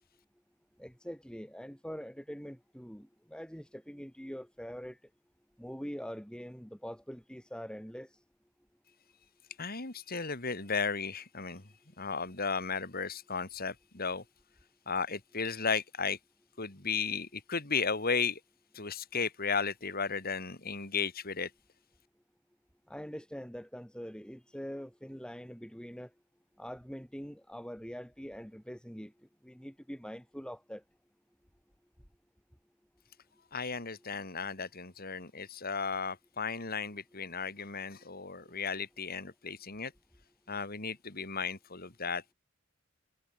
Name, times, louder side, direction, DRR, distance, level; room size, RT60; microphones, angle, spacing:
voice 1, 0.8-5.0 5.6-8.1 22.9-26.1 26.6-29.1 29.4-30.8 38.4-38.5, equal, 5° left, 6.8 m, -44 dB
voice 2, 9.6-11.6 12.0-14.2 14.9-16.2 16.6-18.4 18.7-21.5 33.5-39.9 40.5-42.2, left 5 dB, 45° left, 3.1 m, -34 dB
head